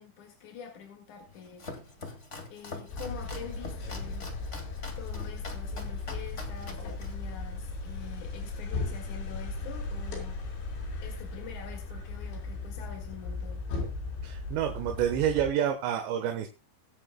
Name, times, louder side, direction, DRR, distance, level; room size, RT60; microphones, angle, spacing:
voice 1, 0.0-1.7 2.5-4.3 5.0-10.4 11.0-13.6, left 8 dB, 50° left, 3 dB, 2.8 m, -45 dB
Domestic sounds home sounds, 1.2-8.2, left 3 dB, 35° left, 1.1 m, -44 dB
sound 1, 2.9-15.5, left 3 dB, 80° left, 6.8 m, -37 dB
voice 2, 14.2-16.5, right 9 dB, 75° right, 6 dB, 3.3 m, -28 dB
23.5 x 8.7 x 2.2 m, 0.27 s
omnidirectional pair, 5.3 m